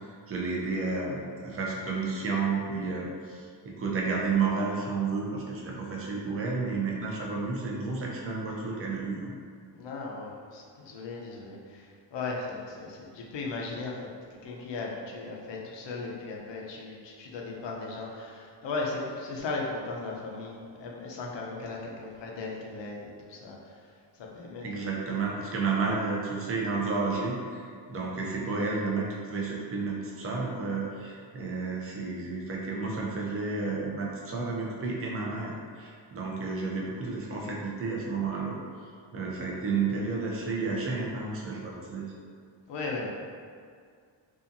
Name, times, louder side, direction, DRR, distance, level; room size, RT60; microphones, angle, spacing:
voice 1, 0.3-9.3 24.6-38.6 39.1-42.1, right 4 dB, 30° right, -2 dB, 0.5 m, -31 dB
voice 2, 9.7-14.1 14.4-25.0 27.9-28.2 42.7-43.1, left 3 dB, 70° left, -1 dB, 0.6 m, -37 dB
2.7 x 2.4 x 2.5 m, 2.1 s
cardioid pair, 105°, 45 cm